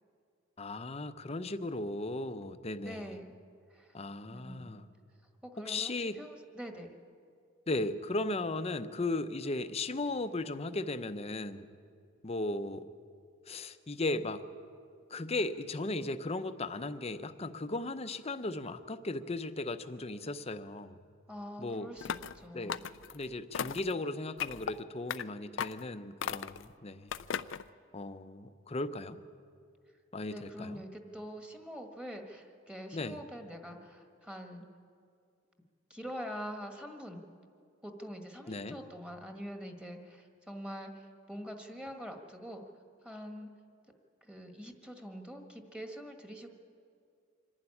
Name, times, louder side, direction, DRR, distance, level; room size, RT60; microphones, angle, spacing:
voice 1, 0.6-3.1 3.9-4.9 5.7-6.2 7.7-11.7 12.2-12.9 13.5-14.4 15.1-21.0 21.6-21.9 22.5-22.8 23.1-27.1 27.9-29.2 30.1-30.8 32.9-33.2 38.5-38.8, left 2 dB, 35° left, 11 dB, 0.7 m, -36 dB
voice 2, 2.8-3.3 3.7-4.0 4.3-4.8 5.4-7.0 21.3-22.8 30.3-34.6 35.9-37.2 37.8-42.6 43.0-43.5 44.2-46.5, equal, 5° right, 4 dB, 1.6 m, -44 dB
sound 1, 22.0-22.4 22.7-23.2 23.5-23.9 24.4-24.7 25.1-25.2 25.6-25.8 26.2-26.6 27.1-27.6, left 8 dB, 75° left, 0.5 m, -36 dB
25.5 x 11.5 x 9.8 m, 2.3 s
head